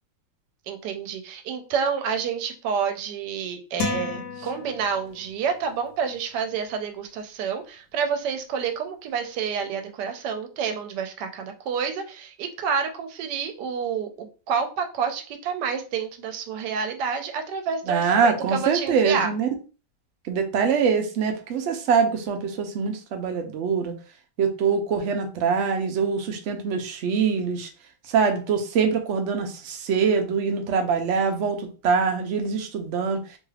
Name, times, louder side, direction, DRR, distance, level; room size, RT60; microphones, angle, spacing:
voice 1, 0.7-19.3, right 6 dB, 85° right, 6 dB, 1.2 m, -29 dB
sound 1, 3.8-5.3, left 4 dB, 85° left, 1.2 m, -32 dB
voice 2, 17.9-19.5 20.3-23.9 24.4-27.7 28.1-31.6 31.8-33.2, right 5 dB, 65° right, 5 dB, 0.7 m, -24 dB
3.0 x 2.3 x 3.2 m, 0.35 s
omnidirectional pair, 1.8 m